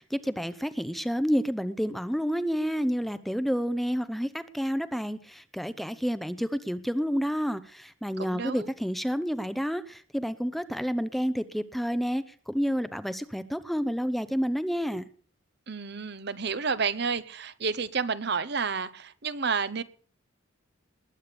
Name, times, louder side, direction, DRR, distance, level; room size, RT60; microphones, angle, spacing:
voice 1, 0.0-15.0, equal, ahead, 13 dB, 0.7 m, -29 dB
voice 2, 8.2-8.7 15.7-19.8, right 5 dB, 55° right, 14 dB, 1.0 m, -30 dB
20.5 x 8.7 x 6.9 m, 0.44 s
head